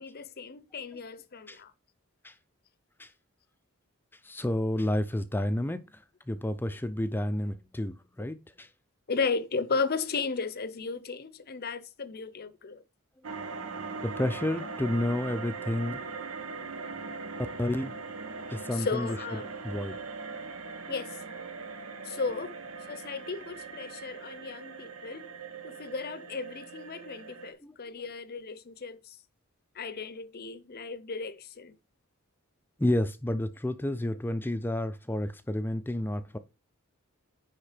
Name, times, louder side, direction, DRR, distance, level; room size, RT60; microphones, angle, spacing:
voice 1, 0.0-1.7 9.1-12.8 18.7-19.5 20.9-21.2 22.0-22.5 22.9-25.3 25.6-29.2 29.7-31.8, left 4 dB, 45° left, 0.7 m, -35 dB
voice 2, 4.2-5.8 6.3-8.7 14.0-16.0 17.6-17.9 18.5-19.2 19.6-20.0 21.6-21.7 27.6-27.7 32.8-36.4, left 1 dB, 10° left, 0.5 m, -30 dB
sound 1, 13.2-27.5, right 4 dB, 85° right, 1.2 m, -40 dB
10.0 x 3.8 x 5.0 m
head